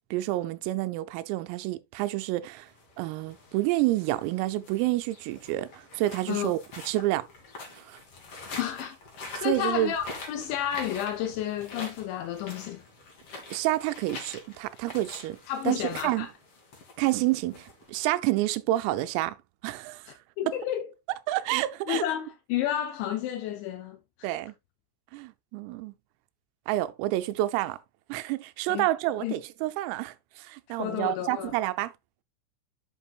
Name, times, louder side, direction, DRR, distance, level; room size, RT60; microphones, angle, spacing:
voice 1, 0.1-2.7 3.0-6.6 6.9-7.3 7.8-8.0 9.4-9.9 13.5-15.4 15.7-16.3 17.0-19.4 19.6-20.1 20.5-20.6 21.3-22.0 24.2-24.5 25.1-25.9 26.7-27.8 28.1-31.9, right 16 dB, 85° right, 3.4 m, -29 dB
sound 1, 2.6-18.3, left 3 dB, 45° left, 2.1 m, -45 dB
voice 2, 8.6-9.0 9.4-12.8 15.5-16.3 20.1-20.9 21.9-24.3 28.7-28.9 29.2-29.3 30.7-31.6, left 11 dB, 80° left, 2.7 m, -31 dB
8.2 x 7.7 x 2.4 m
omnidirectional pair, 5.9 m